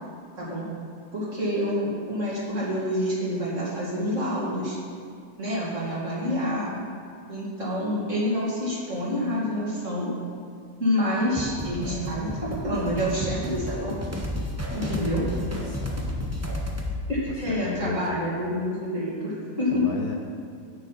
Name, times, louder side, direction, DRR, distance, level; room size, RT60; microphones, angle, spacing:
voice 1, 1.1-4.8 5.4-6.8 7.3-10.1 10.8-14.0 14.7-15.3 17.1-19.8, equal, 40° right, -7 dB, 2.7 m, -27 dB
sound 1, 11.4-17.0, left 1 dB, 25° right, 0.3 m, -32 dB
voice 2, 14.7-15.0 15.6-16.2 17.2-18.5 19.6-20.2, left 5 dB, 65° left, 1 dB, 1.2 m, -36 dB
9.7 x 8.9 x 4.1 m, 2.2 s
omnidirectional pair, 2.0 m